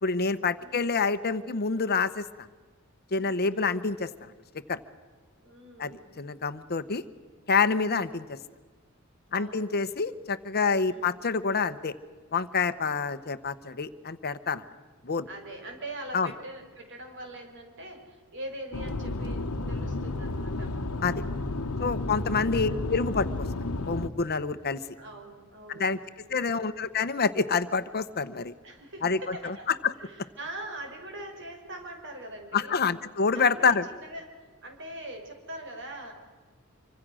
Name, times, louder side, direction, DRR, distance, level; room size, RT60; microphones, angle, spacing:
voice 1, 0.0-2.5 3.1-4.1 4.7-4.8 5.8-7.0 7.5-8.4 9.3-11.9 12.3-14.6 15.0-15.3 16.1-16.3 21.0-21.2 21.8-23.3 23.9-24.8 25.8-26.0 26.3-28.5 29.0-29.5 32.5-33.8, left 4 dB, 45° left, 12 dB, 0.9 m, -27 dB
voice 2, 0.6-1.1 3.2-3.9 5.4-6.2 9.4-10.0 10.8-11.3 15.3-20.8 25.0-26.7 28.6-29.7 30.0-32.8 33.3-36.1, right 1 dB, 55° right, 4 dB, 5.5 m, -43 dB
sound 1, 18.7-24.1, left 2 dB, 80° left, 1.1 m, -32 dB
26.0 x 25.0 x 6.3 m, 1.4 s
head